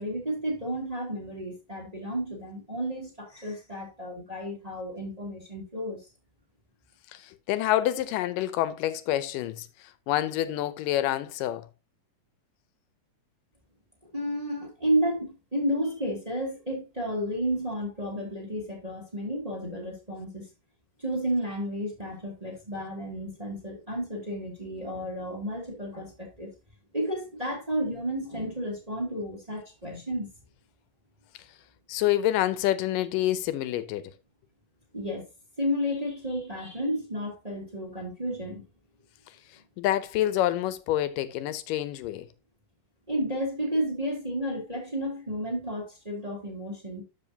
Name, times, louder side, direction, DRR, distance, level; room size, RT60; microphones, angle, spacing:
voice 1, 0.0-6.1 14.1-20.5 21.0-26.5 26.9-30.3 34.9-35.3 35.6-38.7 43.1-47.0, equal, 15° right, 1.9 m, -32 dB
voice 2, 7.1-9.7 10.1-11.7 31.9-34.1 39.8-42.3, left 13 dB, 85° left, 2.3 m, -27 dB
12.5 x 5.2 x 2.8 m
omnidirectional pair, 3.8 m